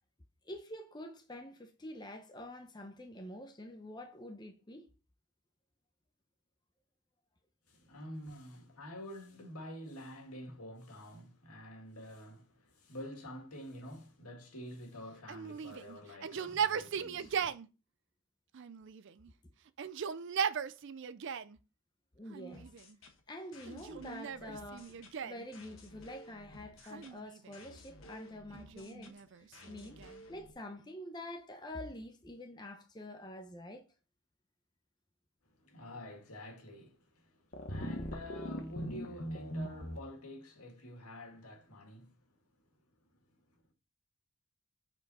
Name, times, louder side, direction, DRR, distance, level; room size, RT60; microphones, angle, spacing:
voice 1, 0.4-4.9 22.2-22.7 23.3-30.0 30.3-33.8, left 1 dB, 20° left, 0.7 m, -47 dB
voice 2, 7.7-17.5 35.5-42.3 43.0-43.7, equal, 85° left, 2.1 m, -48 dB
Yell, 15.3-17.7 18.5-19.3 19.7-21.6 22.3-23.0 23.7-25.5 26.8-27.7 28.5-30.3, right 7 dB, 55° right, 0.4 m, -38 dB
sound 1, 22.5-30.5, left 1 dB, 65° left, 1.4 m, -55 dB
sound 2, 37.5-40.0, equal, 45° left, 1.1 m, -40 dB
7.6 x 4.5 x 4.1 m
head